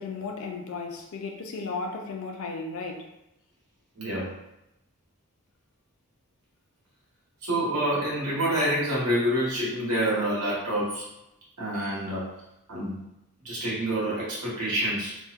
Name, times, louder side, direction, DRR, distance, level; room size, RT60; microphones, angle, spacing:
voice 1, 0.0-3.1, left 4 dB, 65° left, 2 dB, 0.4 m, -35 dB
voice 2, 4.0-4.3 7.4-11.1 11.6-12.3 12.7-13.0 13.4-15.2, right 1 dB, 90° right, -7 dB, 1.1 m, -27 dB
2.7 x 2.1 x 2.4 m, 0.86 s
head